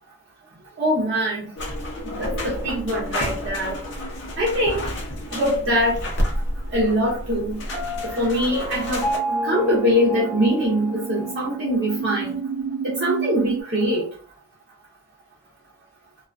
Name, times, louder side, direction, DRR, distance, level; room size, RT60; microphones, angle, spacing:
voice 1, 0.8-1.5 2.1-3.7 4.4-4.9 5.3-6.0 6.7-7.6 8.0-9.0 9.4-12.4 12.8-14.1, equal, 55° right, -5 dB, 0.6 m, -22 dB
sound 1, 1.6-9.2, left 1 dB, 55° left, 0.7 m, -30 dB
sound 2, 5.2-13.6, right 6 dB, 90° right, 0.4 m, -34 dB
Piano, 7.7-11.6, equal, 10° right, 0.8 m, -30 dB
2.3 x 2.2 x 2.4 m, 0.42 s
head